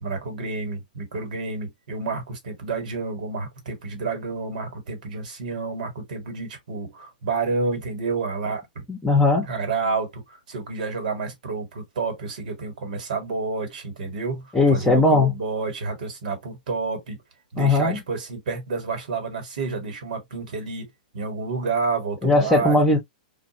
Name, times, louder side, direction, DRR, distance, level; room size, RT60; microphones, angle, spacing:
voice 1, 0.0-8.8 9.4-17.2 17.5-20.9 21.1-22.8, right 4 dB, 70° right, 1.6 m, -29 dB
voice 2, 8.9-9.5 14.5-15.3 17.6-18.0 22.2-23.0, left 2 dB, 10° left, 0.8 m, -18 dB
2.5 x 2.3 x 2.8 m
hypercardioid pair, 125°, 5 cm